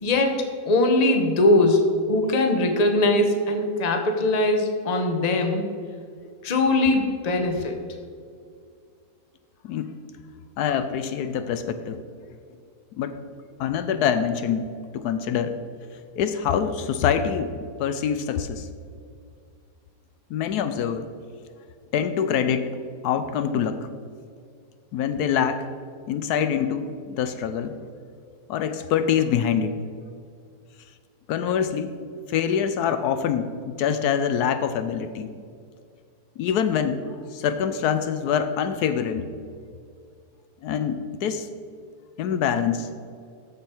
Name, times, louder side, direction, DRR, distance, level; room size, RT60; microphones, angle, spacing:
voice 1, 0.0-5.6 6.4-7.8, left 2 dB, 30° left, 4 dB, 0.9 m, -21 dB
voice 2, 10.6-12.0 13.0-13.2 13.6-14.7 14.9-15.5 16.2-17.5 17.8-18.7 20.3-21.1 21.9-22.7 23.0-23.8 24.9-25.7 26.1-27.8 28.5-29.7 31.3-32.0 32.3-35.3 36.4-37.0 37.3-39.3 40.6-41.5 42.2-42.9, left 8 dB, 80° left, 10 dB, 1.1 m, -25 dB
13.5 x 5.1 x 4.4 m, 2.2 s
omnidirectional pair, 1.7 m